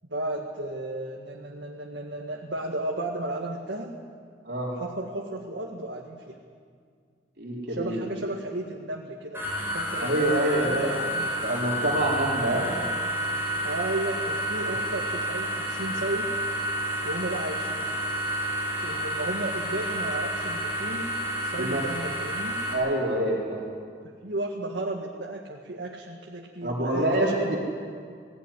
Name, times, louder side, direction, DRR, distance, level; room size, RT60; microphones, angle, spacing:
voice 1, 0.1-3.9 4.8-6.4 7.7-9.4 9.7-11.3 12.4-12.6 13.6-16.3 17.0-17.9 18.8-21.1 21.4-22.6 24.0-27.4, right 1 dB, 80° right, -1 dB, 1.9 m, -34 dB
voice 2, 4.5-4.8 7.4-7.9 10.0-11.0 11.4-12.8 14.6-14.7 21.6-21.8 22.7-23.7 26.6-27.6, right 1 dB, 60° right, -4 dB, 3.7 m, -26 dB
sound 1, 9.3-22.7, equal, 15° right, 5.4 m, -30 dB
18.5 x 18.0 x 9.9 m, 2.1 s
head